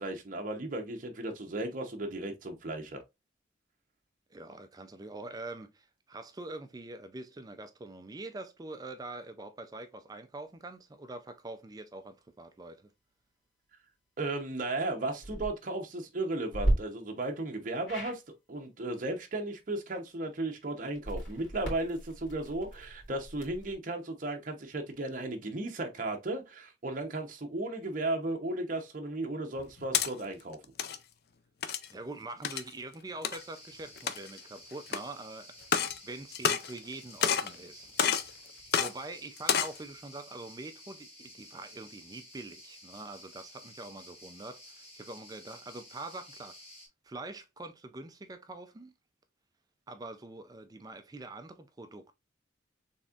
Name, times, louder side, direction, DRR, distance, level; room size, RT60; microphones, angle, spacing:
voice 1, 0.0-3.0 14.2-18.2 18.5-30.6, right 2 dB, 45° right, 0.8 m, -35 dB
voice 2, 4.3-12.9 31.9-35.5 36.0-37.9 38.8-46.6 47.0-48.9 49.9-52.1, right 2 dB, 20° right, 0.4 m, -44 dB
sound 1, 15.1-15.5 16.5-16.7 17.8-18.2 20.9-23.7, right 1 dB, 90° left, 2.4 m, -34 dB
sound 2, 29.6-30.1 30.6-31.0 31.6-31.9 32.4-32.7 33.2-33.4 34.0-34.4 34.9-35.0 35.6-36.0 36.3-36.9 37.2-37.5 38.0-38.3 38.7-38.9 39.4-39.8, left 7 dB, 55° left, 0.4 m, -28 dB
sound 3, 33.3-46.9, left 1 dB, 30° left, 1.4 m, -52 dB
4.1 x 3.4 x 2.4 m
head